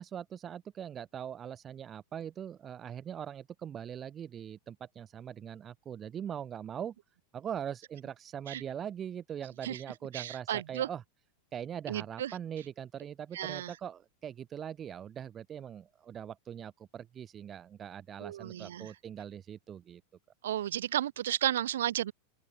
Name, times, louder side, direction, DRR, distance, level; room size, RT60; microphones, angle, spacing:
voice 1, 0.0-6.9 7.3-11.0 11.5-20.0, right 9 dB, 25° right, 2.1 m, -41 dB
voice 2, 10.1-10.9 11.9-12.3 13.3-13.7 18.2-18.9 20.4-22.1, right 11 dB, 60° right, 4.2 m, -33 dB
open air
figure-of-eight pair, 90°, 0 cm